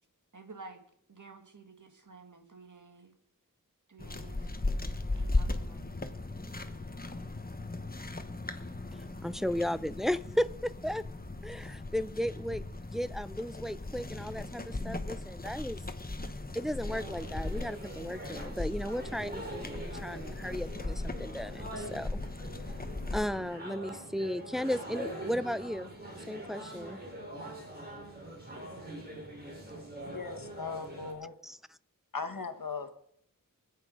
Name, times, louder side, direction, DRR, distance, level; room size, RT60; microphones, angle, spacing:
voice 1, 0.3-0.8 1.1-3.1 3.9-4.6 5.1-6.1, right 3 dB, 65° right, 5 dB, 2.1 m, -51 dB
sound 1, 4.0-23.3, left 2 dB, 25° left, 1.1 m, -38 dB
voice 2, 8.9-11.1 11.4-15.8 16.5-22.2 23.1-25.9 26.3-27.0 31.4-31.6, equal, ahead, 14 dB, 0.5 m, -35 dB
sound 2, 16.8-31.1, right 1 dB, 30° right, 4.5 m, -44 dB
voice 3, 30.1-31.3 32.1-32.9, left 5 dB, 75° left, 7 dB, 1.5 m, -38 dB
24.5 x 8.6 x 5.1 m, 0.72 s
wide cardioid pair, 70°, 33 cm